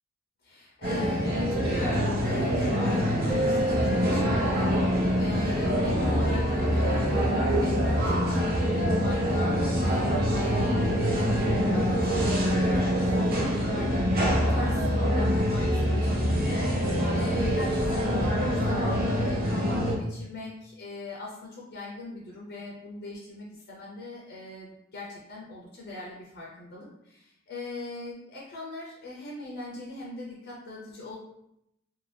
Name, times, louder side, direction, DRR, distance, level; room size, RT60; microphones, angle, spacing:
voice 1, 0.4-31.2, left 2 dB, 55° left, -3 dB, 0.5 m, -40 dB
sound 1, 0.8-19.9, equal, 50° right, 0.7 m, -25 dB
sound 2, 3.3-5.6, right 2 dB, 15° right, 0.4 m, -32 dB
2.6 x 2.3 x 3.2 m, 0.81 s
head